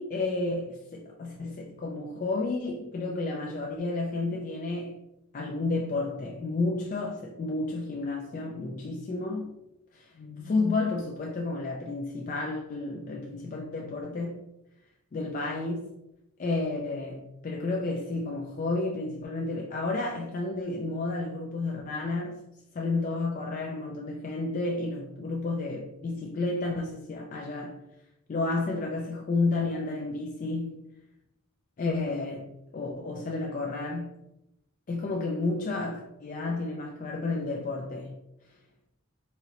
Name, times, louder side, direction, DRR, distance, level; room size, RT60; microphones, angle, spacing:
voice 1, 0.0-5.0 5.3-9.6 9.9-14.4 15.1-15.9 16.4-22.4 22.7-27.8 28.3-30.8 31.8-34.2 34.9-38.2, left 3 dB, 35° left, 0.3 m, -31 dB
3.7 x 3.1 x 2.9 m
head